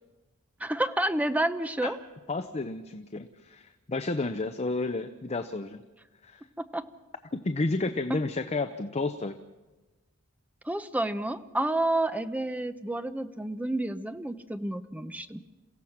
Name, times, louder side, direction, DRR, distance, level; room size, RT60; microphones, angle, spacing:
voice 1, 0.6-2.0 6.6-6.9 8.1-8.2 10.6-15.4, right 1 dB, 5° right, 10 dB, 0.7 m, -30 dB
voice 2, 2.3-5.8 6.2-6.4 7.3-9.3, left 3 dB, 30° left, 9 dB, 0.7 m, -31 dB
28.0 x 16.0 x 5.9 m, 1.2 s
head